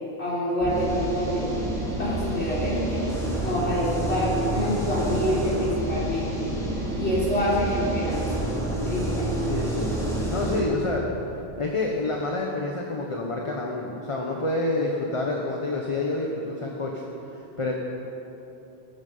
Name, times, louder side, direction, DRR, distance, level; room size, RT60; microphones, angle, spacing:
voice 1, 0.2-1.5 2.0-3.1 3.4-6.5 7.0-8.4 8.8-9.4, equal, 85° left, -7 dB, 4.8 m, -27 dB
sound 1, 0.6-10.6, right 1 dB, 5° left, 3.7 m, -28 dB
voice 2, 9.5-9.9 10.3-11.1 11.6-17.0 17.3-17.8, left 2 dB, 30° left, 0 dB, 1.2 m, -28 dB
15.5 x 14.5 x 5.5 m, 3.0 s
omnidirectional pair, 1.1 m